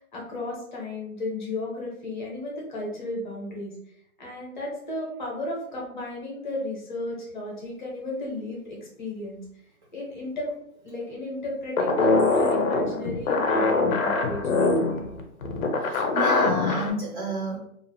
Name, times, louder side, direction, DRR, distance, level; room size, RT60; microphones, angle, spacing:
voice 1, 0.0-3.8 4.2-9.5 9.9-10.5 10.8-14.7, left 2 dB, 35° left, -3 dB, 0.7 m, -34 dB
sound 1, 11.8-16.9, left 3 dB, 65° left, 0.6 m, -23 dB
voice 2, 15.8-17.6, right 1 dB, 35° right, -6 dB, 0.4 m, -30 dB
2.5 x 2.0 x 2.8 m, 0.74 s
hypercardioid pair, 175°, 44 cm